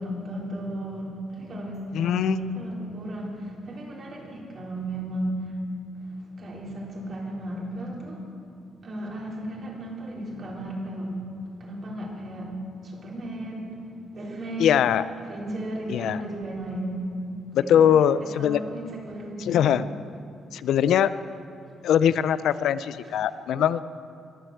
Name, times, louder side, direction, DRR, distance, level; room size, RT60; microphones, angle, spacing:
voice 1, 0.0-5.5 5.9-8.3 8.8-17.1 17.6-19.8, right 1 dB, 50° right, -2 dB, 4.2 m, -34 dB
voice 2, 1.9-2.4 14.6-15.0 15.9-16.2 17.5-18.6 19.4-19.9 20.5-21.1 21.8-23.8, left 9 dB, 75° left, 14 dB, 0.5 m, -21 dB
23.0 x 7.9 x 8.0 m, 2.5 s
cardioid pair, 90°, 0 cm